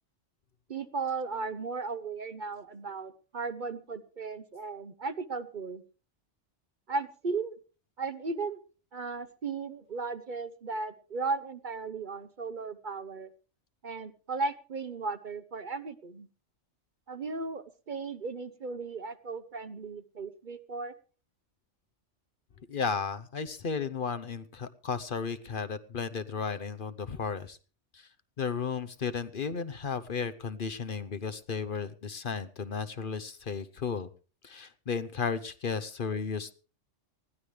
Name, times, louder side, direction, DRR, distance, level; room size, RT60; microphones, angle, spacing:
voice 1, 0.7-5.8 6.9-7.6 8.0-8.6 8.9-13.3 13.8-16.3 17.1-20.9, right 4 dB, 45° right, 12 dB, 0.9 m, -36 dB
voice 2, 22.7-27.6 27.9-28.1 28.4-34.1 34.4-36.5, left 5 dB, 50° left, 11 dB, 0.9 m, -34 dB
20.0 x 14.5 x 3.3 m, 0.36 s
omnidirectional pair, 1.2 m